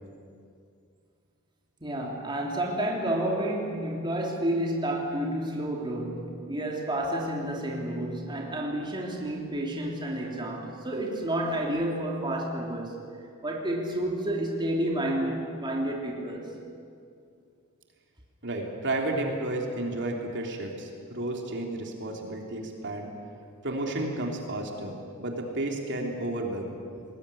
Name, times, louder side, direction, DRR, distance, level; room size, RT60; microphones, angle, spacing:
voice 1, 1.8-13.0 13.4-16.6, right 1 dB, 20° right, -1 dB, 3.0 m, -30 dB
voice 2, 18.4-23.1 23.6-26.7, right 1 dB, 55° right, 1 dB, 3.3 m, -32 dB
21.5 x 19.5 x 10.0 m, 2.4 s
head